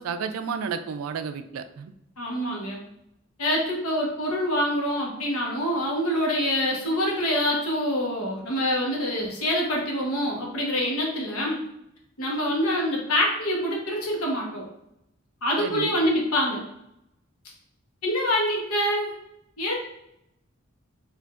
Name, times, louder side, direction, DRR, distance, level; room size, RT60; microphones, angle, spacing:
voice 1, 0.0-1.9 15.6-15.9, right 6 dB, 80° right, 9 dB, 0.3 m, -31 dB
voice 2, 2.2-2.8 3.4-11.6 12.2-14.6 15.4-16.6 18.0-19.1 19.6-19.8, equal, 85° left, -1 dB, 1.0 m, -25 dB
4.6 x 2.5 x 2.4 m, 0.80 s
head